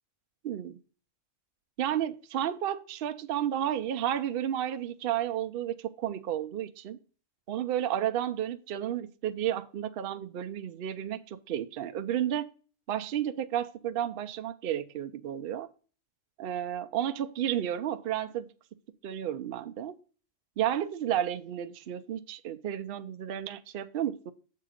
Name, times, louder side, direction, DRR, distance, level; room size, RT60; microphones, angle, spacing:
voice 1, 0.4-0.8 1.8-7.0 7.5-12.5 12.9-15.7 16.4-18.5 19.0-19.9 20.6-24.3, right 11 dB, 60° right, 0.7 m, -32 dB
7.5 x 3.8 x 6.3 m
omnidirectional pair, 1.3 m